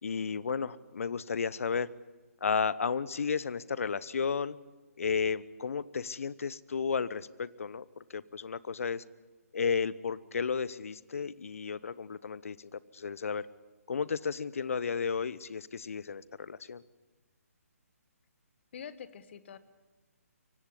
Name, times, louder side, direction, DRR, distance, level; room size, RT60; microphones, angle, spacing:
voice 1, 0.0-1.9 2.4-4.6 5.0-7.8 8.1-9.0 9.5-13.5 13.9-16.8, left 6 dB, 65° left, 19 dB, 0.9 m, -33 dB
voice 2, 18.7-19.6, left 8 dB, 45° left, 14 dB, 1.6 m, -45 dB
24.0 x 17.0 x 9.8 m, 1.2 s
figure-of-eight pair, 140°, 8 cm